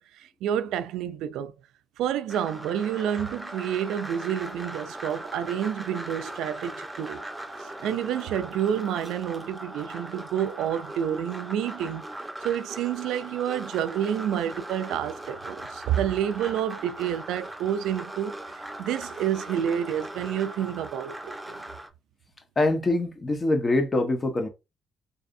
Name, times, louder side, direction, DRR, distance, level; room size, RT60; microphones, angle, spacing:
voice 1, 0.0-1.5 2.0-7.3 7.6-12.0 12.4-18.4 18.8-21.6, right 9 dB, 90° right, 0.3 m, -29 dB
sound 1, 2.3-21.9, right 1 dB, 10° right, 0.9 m, -39 dB
voice 2, 22.6-24.5, left 2 dB, 30° left, 1.2 m, -24 dB
4.1 x 3.3 x 2.6 m
cardioid pair, 90°, 0 cm